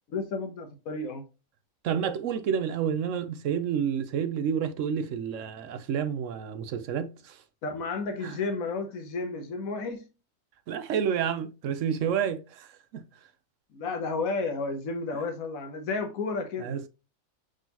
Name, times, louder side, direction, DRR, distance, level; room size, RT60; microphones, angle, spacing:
voice 1, 0.1-1.2 7.6-10.1 13.7-16.8, left 3 dB, 85° left, 1.3 m, -32 dB
voice 2, 1.8-7.4 8.2-8.4 10.7-13.0 16.6-16.9, right 8 dB, 70° right, 0.9 m, -29 dB
5.0 x 3.8 x 2.8 m
omnidirectional pair, 1.4 m